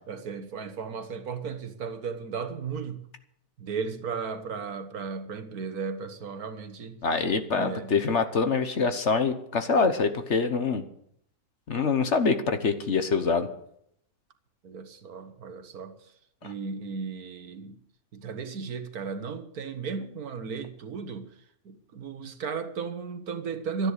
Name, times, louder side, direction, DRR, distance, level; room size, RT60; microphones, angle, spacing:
voice 1, 0.1-3.0 3.6-7.0 7.5-7.9 14.6-15.9 16.4-17.7 18.1-21.3 21.6-23.9, right 5 dB, 70° right, 1.7 m, -35 dB
voice 2, 7.0-10.8 11.7-13.5, left 4 dB, 50° left, 1.3 m, -25 dB
12.5 x 10.5 x 8.1 m
omnidirectional pair, 1.6 m